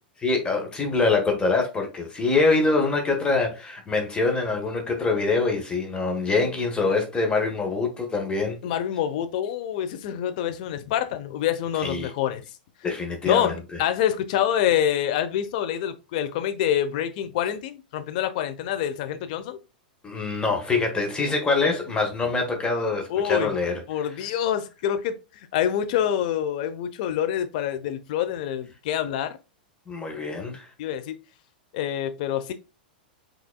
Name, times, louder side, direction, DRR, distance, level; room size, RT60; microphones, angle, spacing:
voice 1, 0.2-8.6 11.8-12.1 12.8-13.5 20.0-23.8 29.9-30.7, left 3 dB, 20° left, 1.3 m, -24 dB
voice 2, 8.6-12.4 13.2-19.6 23.1-23.5 23.9-25.2 25.5-29.4 30.8-31.1 31.7-32.5, left 10 dB, 55° left, 0.8 m, -26 dB
6.0 x 3.8 x 2.3 m
hypercardioid pair, 105°, 5 cm